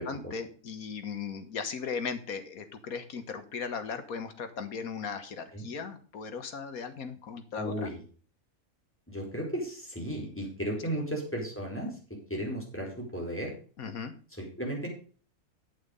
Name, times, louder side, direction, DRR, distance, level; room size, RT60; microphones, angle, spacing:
voice 1, 0.0-7.9 10.9-11.0 13.8-14.1, left 5 dB, 80° left, 9 dB, 1.7 m, -37 dB
voice 2, 7.6-8.0 9.1-11.9 12.3-13.5 14.4-14.9, equal, 10° left, -1 dB, 4.4 m, -34 dB
8.7 x 8.6 x 5.3 m, 0.41 s
omnidirectional pair, 1.5 m